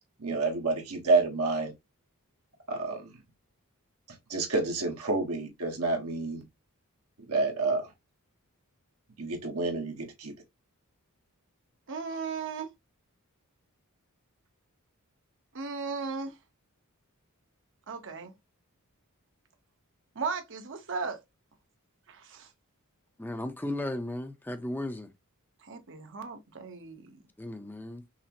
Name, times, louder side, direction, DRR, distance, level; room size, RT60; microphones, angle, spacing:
voice 1, 0.2-1.7 2.7-3.1 4.3-6.4 7.3-7.9 9.2-10.3, right 3 dB, 75° right, 1.2 m, -29 dB
voice 2, 11.9-12.7 15.5-16.3 17.9-18.3 20.1-21.2 22.1-22.5 25.6-27.1, right 5 dB, 60° right, 0.9 m, -36 dB
voice 3, 23.2-25.1 27.4-28.0, left 1 dB, 10° left, 0.5 m, -35 dB
5.7 x 2.0 x 2.8 m
head